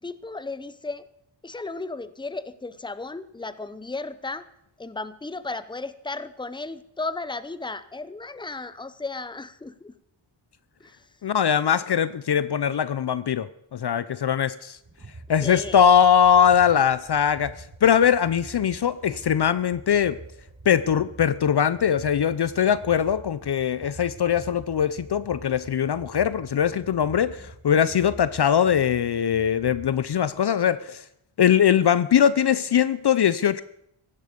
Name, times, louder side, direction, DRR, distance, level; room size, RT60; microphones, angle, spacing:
voice 1, 0.0-1.0 1.4-4.5 4.8-9.9 10.8-11.1 15.4-15.8, left 3 dB, 10° left, 14 dB, 0.8 m, -35 dB
voice 2, 11.2-14.8 15.3-17.5 17.8-20.2 20.7-31.0 31.4-33.6, left 8 dB, 55° left, 15 dB, 0.6 m, -21 dB
sound 1, 14.8-30.4, right 2 dB, 45° right, 4.8 m, -45 dB
16.0 x 12.0 x 5.2 m, 0.77 s
cardioid pair, 65°, 50 cm